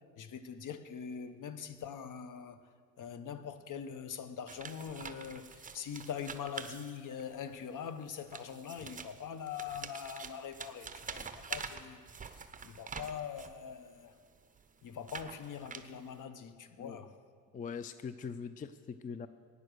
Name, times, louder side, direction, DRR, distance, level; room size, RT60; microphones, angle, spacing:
voice 1, 0.2-2.7 3.0-14.1 14.8-17.2, left 7 dB, 50° left, 1.0 m, -43 dB
sound 1, 4.5-7.4 8.1-13.6 14.3-16.2, right 5 dB, 20° right, 0.9 m, -46 dB
voice 2, 17.5-19.3, left 6 dB, 20° left, 0.4 m, -42 dB
14.0 x 9.9 x 6.4 m
supercardioid pair, 80°, 40 cm